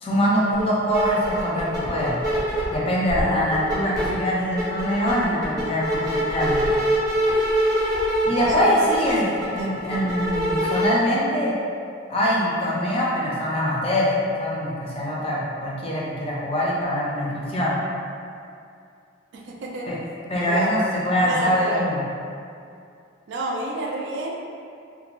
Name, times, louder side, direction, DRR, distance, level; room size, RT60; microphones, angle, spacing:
voice 1, 0.0-2.2 2.7-6.6 8.2-11.5 12.1-14.1 14.4-17.8 19.9-20.0 20.3-22.0, equal, 30° left, -5 dB, 0.4 m, -23 dB
sound 1, 0.5-0.6 0.9-2.7 3.1-4.1 4.4-10.9, equal, 20° right, 0.5 m, -24 dB
voice 2, 8.4-9.8 19.3-19.9 20.4-20.7 21.2-21.9 23.3-24.3, right 2 dB, 65° right, -2 dB, 0.4 m, -30 dB
2.4 x 2.1 x 3.0 m, 2.4 s
head